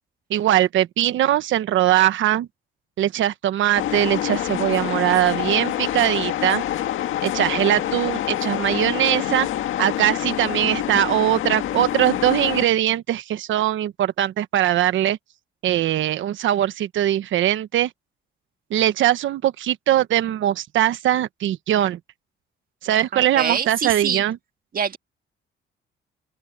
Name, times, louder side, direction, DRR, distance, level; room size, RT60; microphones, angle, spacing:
voice 1, 0.3-2.5 3.0-6.6 7.2-9.5 9.8-15.2 15.6-17.9 18.7-22.0 22.8-24.4, right 12 dB, 75° right, 1.2 m, -21 dB
sound 1, 3.8-12.7, left 12 dB, 80° left, 1.8 m, -26 dB
voice 2, 23.1-24.2 24.7-25.0, right 6 dB, 45° right, 1.7 m, -25 dB
open air
cardioid pair, 90°, 20 cm